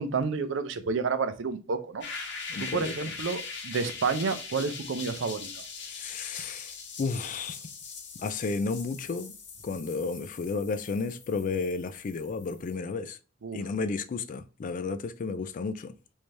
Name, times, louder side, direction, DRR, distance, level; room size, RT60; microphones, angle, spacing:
voice 1, 0.0-2.0 2.6-5.6 13.4-13.6, right 4 dB, 70° right, 0.5 m, -30 dB
sound 1, 2.0-12.7, left 5 dB, 65° left, 0.8 m, -41 dB
voice 2, 2.5-3.1 5.8-7.6 8.2-9.3 9.6-13.2 13.5-15.9, left 4 dB, 45° left, 0.3 m, -32 dB
3.3 x 2.7 x 3.2 m
head